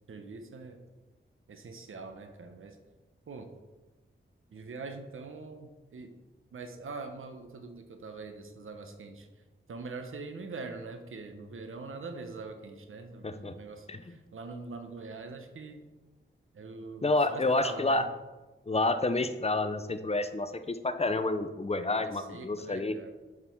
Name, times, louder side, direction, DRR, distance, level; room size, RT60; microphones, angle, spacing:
voice 1, 0.1-0.8 1.5-2.8 3.3-3.5 4.5-6.1 6.5-9.3 9.7-15.8 16.5-18.1 22.0-23.1, right 3 dB, 85° right, 6 dB, 0.9 m, -43 dB
voice 2, 13.2-13.5 13.9-14.0 17.0-18.0 18.7-23.0, left 2 dB, 30° left, 10 dB, 0.6 m, -29 dB
7.3 x 6.1 x 4.5 m, 1.2 s
cardioid pair, 60°, 20 cm